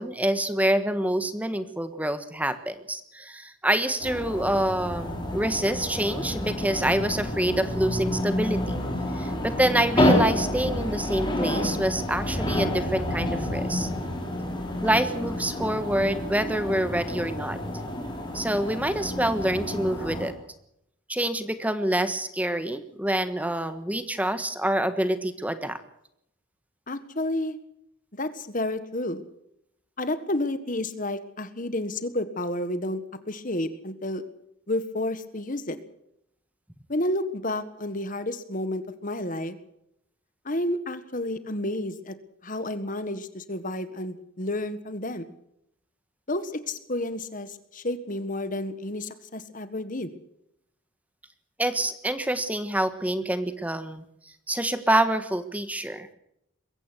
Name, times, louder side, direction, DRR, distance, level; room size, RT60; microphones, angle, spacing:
voice 1, 0.0-8.8 9.1-13.9 14.8-17.6 18.3-20.3 21.1-25.8 51.6-54.0 54.5-56.1, right 1 dB, 5° right, 11 dB, 1.4 m, -26 dB
sound 1, 4.0-20.3, left 1 dB, 20° left, 4.3 m, -29 dB
voice 2, 26.9-27.6 28.1-29.2 30.0-34.2 34.7-35.8 36.9-39.6 40.4-42.1 42.4-45.2 46.3-50.1, left 1 dB, 40° left, 12 dB, 1.5 m, -30 dB
22.5 x 16.0 x 8.1 m, 0.78 s
head